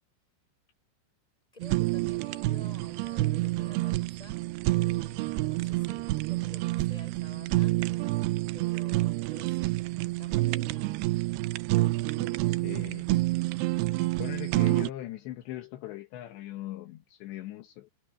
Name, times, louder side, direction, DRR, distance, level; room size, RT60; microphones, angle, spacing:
voice 1, 1.5-4.4 4.8-7.8 8.5-10.9 12.7-13.4, left 2 dB, 10° left, 6.7 m, -52 dB
Fire, 1.6-14.9, right 19 dB, 80° right, 2.4 m, -28 dB
voice 2, 12.1-13.2 13.9-17.9, left 14 dB, 75° left, 3.3 m, -41 dB
omnidirectional pair, 5.4 m